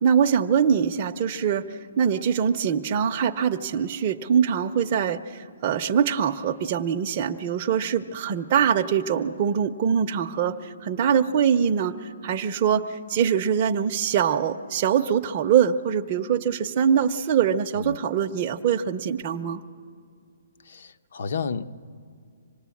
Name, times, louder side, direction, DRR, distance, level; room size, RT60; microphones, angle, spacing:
voice 1, 0.0-19.6, right 8 dB, 25° right, 3 dB, 0.6 m, -23 dB
voice 2, 20.7-21.7, left 5 dB, 55° left, 10 dB, 0.8 m, -32 dB
25.5 x 19.5 x 8.4 m, 2.2 s
hypercardioid pair, 175°, 0 cm